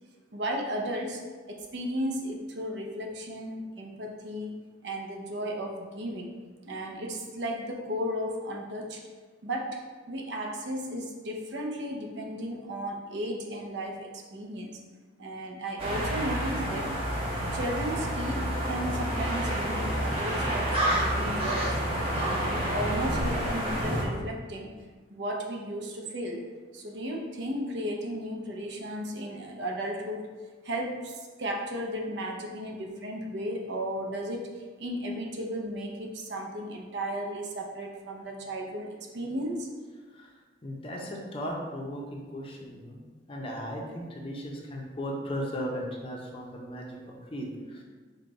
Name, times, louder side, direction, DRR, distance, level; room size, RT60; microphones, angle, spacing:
voice 1, 0.3-1.2 1.5-6.3 6.6-9.0 9.4-9.8 10.1-14.8 15.2-16.9 17.5-21.8 22.2-24.7 25.1-26.4 26.7-30.3 30.6-39.7, equal, 60° right, 1 dB, 0.6 m, -34 dB
sound 1, 15.8-24.0, right 1 dB, 30° right, 0.8 m, -29 dB
voice 2, 40.6-43.0 43.3-47.0 47.3-47.8, equal, 30° left, -1 dB, 0.6 m, -36 dB
5.0 x 2.3 x 3.9 m, 1.4 s
head